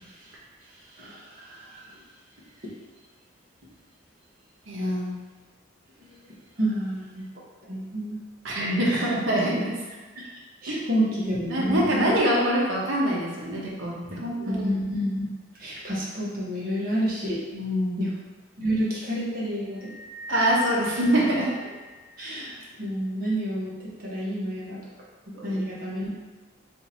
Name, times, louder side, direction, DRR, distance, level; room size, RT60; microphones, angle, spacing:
voice 1, 0.0-2.0 2.6-2.7 6.0-8.2 8.8-9.1 10.1-10.2 10.6-12.2 14.0-15.3 15.6-17.4 18.0-18.1 18.6-20.0 20.9-21.2 22.2-24.8 25.4-26.1, equal, 45° right, -6 dB, 0.9 m, -30 dB
voice 2, 4.7-5.1 8.4-9.7 10.7-10.8 11.5-14.7 17.5-18.0 20.3-21.5 25.3-25.6, right 1 dB, 75° right, -4 dB, 0.9 m, -25 dB
sound 1, 19.7-22.4, left 3 dB, 55° left, 0.5 m, -39 dB
2.8 x 2.6 x 4.0 m, 1.3 s
head